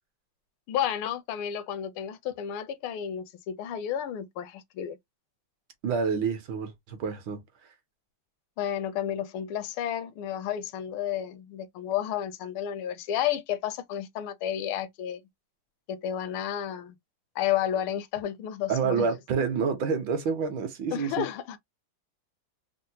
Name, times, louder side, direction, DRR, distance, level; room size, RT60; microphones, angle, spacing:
voice 1, 0.7-5.0 8.6-15.2 15.9-17.0 17.4-19.1 20.9-21.6, left 10 dB, 80° left, 1.4 m, -31 dB
voice 2, 5.8-7.4 18.7-21.2, right 5 dB, 70° right, 1.5 m, -28 dB
4.4 x 2.0 x 2.7 m
omnidirectional pair, 2.3 m